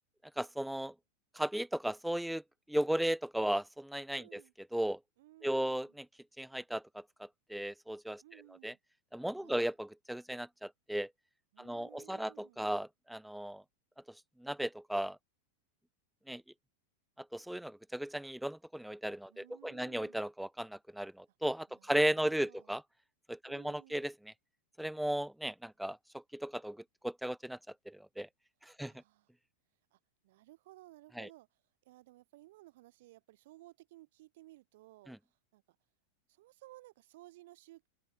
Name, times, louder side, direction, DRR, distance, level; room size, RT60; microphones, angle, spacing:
voice 1, 0.4-0.9 1.3-2.4 2.7-4.4 4.7-5.0 5.4-6.1 6.4-8.2 8.6-8.7 9.1-11.1 11.6-13.6 14.4-15.2 16.3-16.4 17.2-22.8 23.3-24.3 24.8-27.6 27.9-28.3 28.6-28.9 31.2-31.3 35.1-35.2, right 1 dB, ahead, 0.4 m, -36 dB
voice 2, 4.1-4.5 5.2-6.0 8.2-8.8 9.4-9.7 11.5-12.6 19.3-20.2 21.7-22.7 23.5-24.0 28.8-29.3 29.9-35.1 35.5-35.8 36.3-37.9, right 18 dB, 55° right, 5.0 m, -58 dB
open air
figure-of-eight pair, 90°, 0 cm